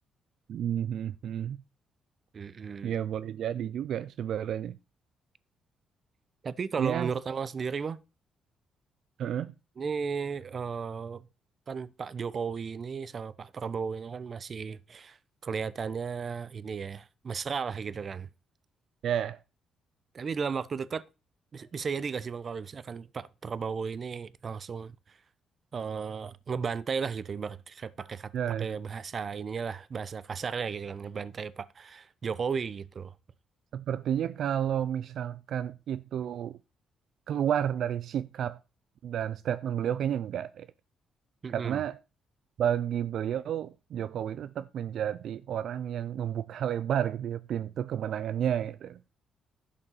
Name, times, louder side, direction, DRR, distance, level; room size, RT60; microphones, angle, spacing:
voice 1, 0.5-1.6 2.8-4.8 6.8-7.1 9.2-9.5 19.0-19.4 28.3-28.8 33.7-36.6 37.3-38.6 39.0-40.7 41.5-42.0 42.6-49.0, right 9 dB, 70° right, 0.5 m, -31 dB
voice 2, 2.3-3.0 6.4-8.0 9.8-11.2 11.7-15.2 15.4-18.3 20.1-21.0 21.5-25.2 25.7-28.3 28.6-33.1 41.4-41.8, right 6 dB, 45° right, 0.8 m, -35 dB
11.0 x 5.4 x 7.1 m
cardioid pair, 90°, 0 cm